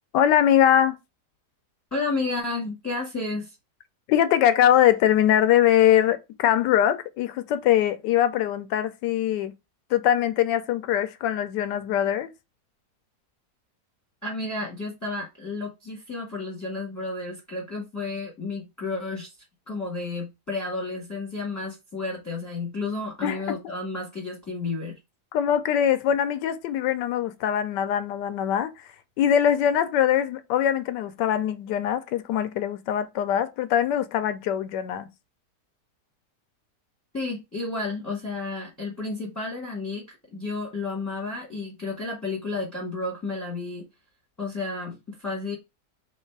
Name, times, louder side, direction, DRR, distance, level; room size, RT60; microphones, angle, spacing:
voice 1, 0.1-1.0 4.1-9.5 9.9-12.3 23.2-23.4 25.3-28.8 29.2-35.1, left 10 dB, 85° left, 1.2 m, -22 dB
voice 2, 1.9-3.5 14.2-19.3 19.7-24.9 37.1-43.8 44.4-45.6, left 3 dB, 10° left, 1.2 m, -32 dB
3.2 x 3.2 x 4.5 m
omnidirectional pair, 1.8 m